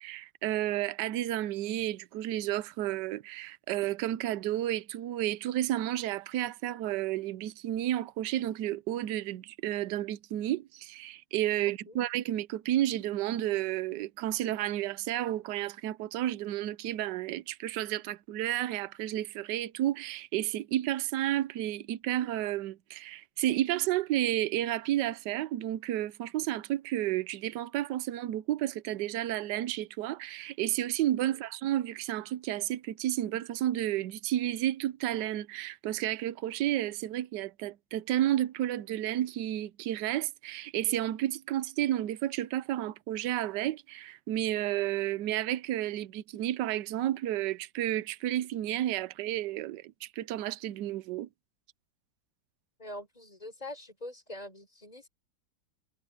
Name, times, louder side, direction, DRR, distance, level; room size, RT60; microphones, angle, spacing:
voice 1, 0.0-51.3, right 13 dB, 70° right, 1.2 m, -31 dB
voice 2, 11.7-12.0 31.2-31.5 52.8-55.1, left 1 dB, 20° left, 5.0 m, -44 dB
omnidirectional pair, 2.1 m